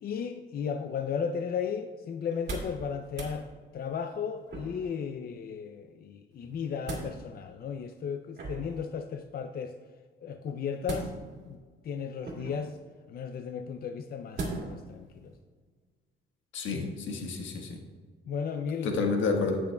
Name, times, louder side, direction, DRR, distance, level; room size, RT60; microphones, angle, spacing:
voice 1, 0.0-3.5 3.7-9.8 10.2-11.2 11.5-12.8 13.1-15.3 16.7-17.0 18.3-19.0, left 6 dB, 50° left, 7 dB, 0.5 m, -35 dB
sound 1, 2.3-2.8 3.1-3.4 4.5-4.9 6.4-7.1 8.3-8.8 10.8-11.5 12.2-12.7 14.3-14.8 15.3-15.4, right 3 dB, 60° right, 2.3 m, -38 dB
voice 2, 16.5-17.8 18.8-19.6, left 4 dB, 75° left, 2 dB, 1.5 m, -29 dB
17.0 x 6.1 x 2.3 m, 1.5 s
cardioid pair, 90°, 20 cm